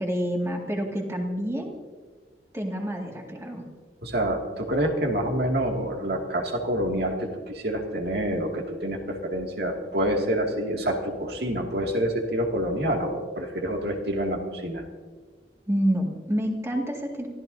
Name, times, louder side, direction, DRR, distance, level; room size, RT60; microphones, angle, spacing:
voice 1, 0.0-1.7 2.5-3.6 15.7-17.3, equal, 15° right, 1 dB, 2.1 m, -28 dB
voice 2, 4.0-14.8, right 1 dB, 65° right, 1 dB, 2.3 m, -27 dB
26.0 x 14.5 x 2.7 m, 1.4 s
head